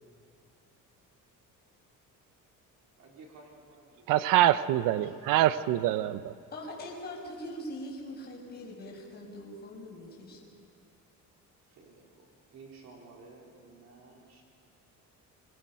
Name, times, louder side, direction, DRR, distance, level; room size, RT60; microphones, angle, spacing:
voice 1, 3.0-4.1 4.9-5.6 11.7-14.4, right 3 dB, 55° right, -1 dB, 4.2 m, -54 dB
voice 2, 4.1-6.3, right 13 dB, 80° right, 14 dB, 0.8 m, -25 dB
voice 3, 6.5-10.5, left 1 dB, 30° left, -3 dB, 5.8 m, -42 dB
25.5 x 22.0 x 5.7 m, 2.5 s
cardioid pair, 170°, 32 cm